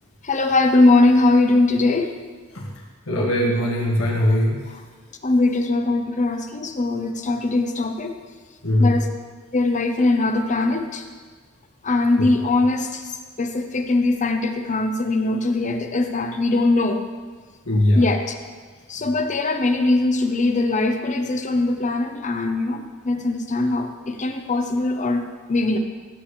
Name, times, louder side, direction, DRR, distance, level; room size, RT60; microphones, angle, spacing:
voice 1, 0.2-2.1 5.2-8.1 8.8-9.1 9.5-11.0 11.8-13.0 13.4-17.0 17.9-18.4 18.9-25.2 25.5-25.8, left 2 dB, 35° left, 6 dB, 0.8 m, -21 dB
voice 2, 3.1-4.6 8.6-9.0 12.2-12.3 17.7-18.0, left 1 dB, 70° left, -3 dB, 1.7 m, -20 dB
14.0 x 8.4 x 3.2 m, 1.5 s
head